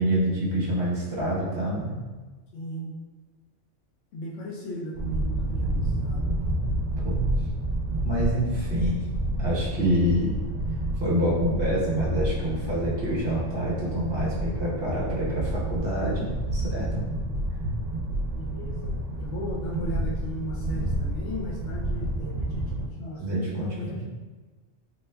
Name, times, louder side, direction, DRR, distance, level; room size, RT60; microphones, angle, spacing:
voice 1, 0.0-2.0 7.0-7.3 8.0-9.0 9.4-10.3 11.0-17.0 22.6-24.0, equal, 25° right, -7 dB, 0.8 m, -27 dB
voice 2, 2.5-2.9 4.1-6.3 18.3-18.9 19.2-24.1, left 1 dB, 70° left, -3 dB, 0.8 m, -37 dB
sound 1, 4.9-22.9, right 1 dB, 75° right, 0.9 m, -29 dB
3.3 x 3.1 x 2.2 m, 1.3 s
omnidirectional pair, 1.3 m